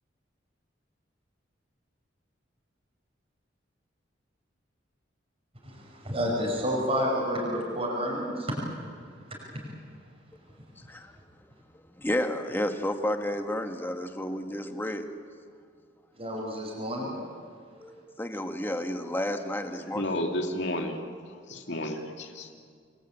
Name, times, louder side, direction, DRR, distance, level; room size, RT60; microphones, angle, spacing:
voice 1, 5.6-8.6 9.3-9.7 16.1-17.1, equal, 30° right, -3 dB, 5.7 m, -30 dB
voice 2, 12.0-15.1 17.8-20.1, left 1 dB, 10° left, 5 dB, 1.6 m, -31 dB
voice 3, 19.9-21.0 21.3-22.5, left 1 dB, 65° left, 3 dB, 2.7 m, -32 dB
27.5 x 21.5 x 9.0 m, 2.1 s
head